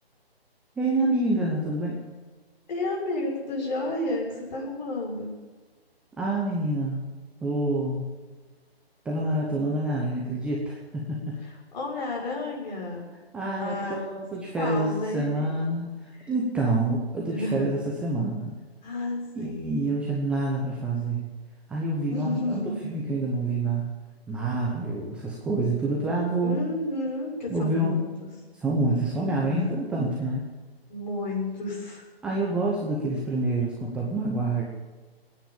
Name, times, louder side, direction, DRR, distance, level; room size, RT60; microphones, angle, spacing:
voice 1, 0.8-2.0 6.2-7.0 7.4-8.0 9.0-11.2 13.3-18.5 19.3-21.2 21.7-23.9 24.3-26.7 27.5-28.0 28.6-30.4 32.2-34.6, right 2 dB, 5° right, -3 dB, 0.8 m, -27 dB
voice 2, 2.7-5.3 11.4-13.0 13.4-14.0 14.5-15.3 16.2-16.3 17.3-17.7 18.8-19.8 22.1-22.9 26.4-28.1 29.3-29.9 30.9-32.0, left 2 dB, 45° left, -2 dB, 6.7 m, -31 dB
21.0 x 9.6 x 7.2 m, 1.3 s
figure-of-eight pair, 150°, 31 cm